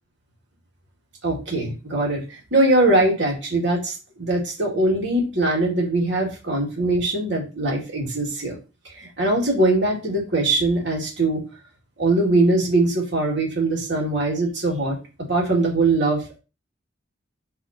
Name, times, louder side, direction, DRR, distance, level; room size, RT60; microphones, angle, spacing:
voice 1, 1.2-8.6 8.8-11.4 12.0-15.0 15.3-16.4, right 2 dB, 65° right, -2 dB, 3.1 m, -21 dB
6.0 x 4.2 x 4.7 m, 0.31 s
head